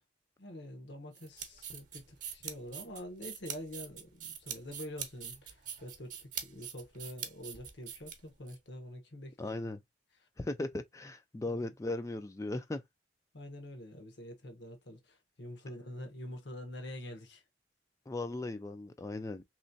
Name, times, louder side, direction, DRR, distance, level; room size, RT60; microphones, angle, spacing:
voice 1, 0.4-9.5 11.5-11.7 13.3-17.4, left 1 dB, 70° left, 1.1 m, -46 dB
sound 1, 1.1-8.6, right 8 dB, 45° right, 0.8 m, -43 dB
voice 2, 9.4-9.8 10.4-12.8 18.1-19.4, left 2 dB, 15° left, 0.3 m, -37 dB
3.2 x 3.1 x 2.6 m
head